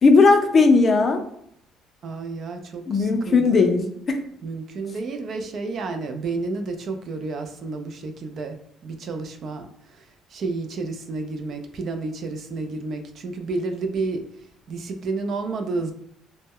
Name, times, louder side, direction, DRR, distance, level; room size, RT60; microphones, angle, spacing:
voice 1, 0.0-1.2 2.9-4.2, left 4 dB, 40° left, 5 dB, 0.4 m, -17 dB
voice 2, 2.0-3.7 4.4-8.6 8.8-14.2 14.7-15.9, right 3 dB, 55° right, 6 dB, 0.3 m, -31 dB
2.1 x 2.0 x 3.5 m, 0.71 s
cardioid pair, 110°, 0 cm